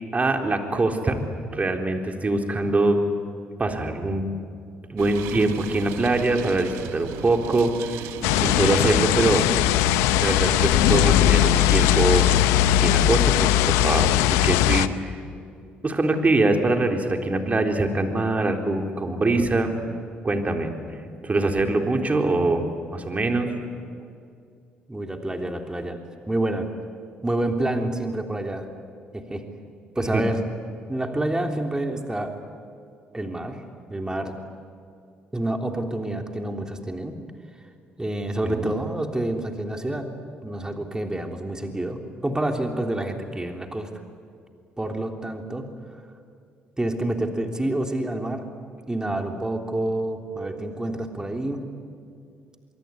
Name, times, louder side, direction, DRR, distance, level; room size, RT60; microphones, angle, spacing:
voice 1, 0.1-1.2 1.5-3.0 3.6-4.2 4.9-8.0 8.4-9.4 10.2-12.3 12.6-15.2 15.8-19.7 20.2-20.7 21.2-22.6 22.9-23.5 30.1-30.2 38.4-38.7, right 2 dB, 30° right, 4 dB, 4.0 m, -23 dB
sound 1, 5.0-12.4, right 9 dB, 80° right, 1.5 m, -37 dB
sound 2, 8.2-14.9, left 13 dB, 80° left, 0.8 m, -19 dB
voice 2, 24.9-26.0 26.3-26.7 27.2-28.7 29.1-29.4 29.9-30.4 30.9-32.3 33.1-33.6 33.9-34.3 35.3-37.1 38.0-40.1 40.4-43.9 44.8-45.7 46.8-48.5 48.9-51.6, right 1 dB, 15° right, 4 dB, 3.4 m, -28 dB
25.0 x 23.0 x 9.8 m, 2.3 s
hypercardioid pair, 55°, 5 cm